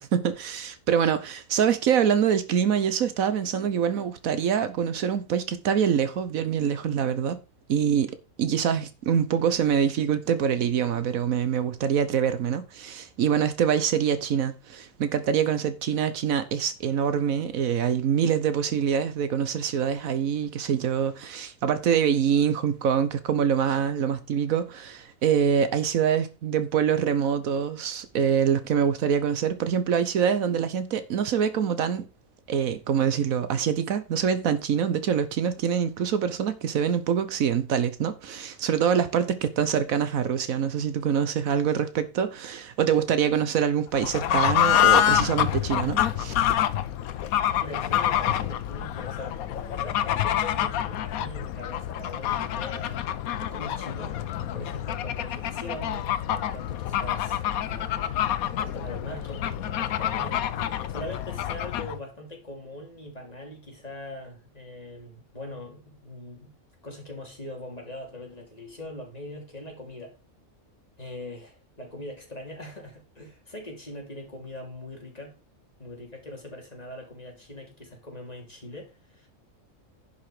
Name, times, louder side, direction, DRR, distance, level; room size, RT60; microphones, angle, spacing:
voice 1, 0.0-7.4 7.7-32.1 32.5-46.3, right 8 dB, 75° right, 1.3 m, -25 dB
Fowl / Bird, 43.9-62.0, left 11 dB, 90° left, 1.1 m, -27 dB
voice 2, 47.6-53.0 53.4-54.2 54.5-58.2 58.6-66.5 66.8-70.2 71.0-75.3 75.8-79.3, left 1 dB, 25° left, 3.0 m, -41 dB
10.5 x 5.6 x 4.9 m
omnidirectional pair, 1.5 m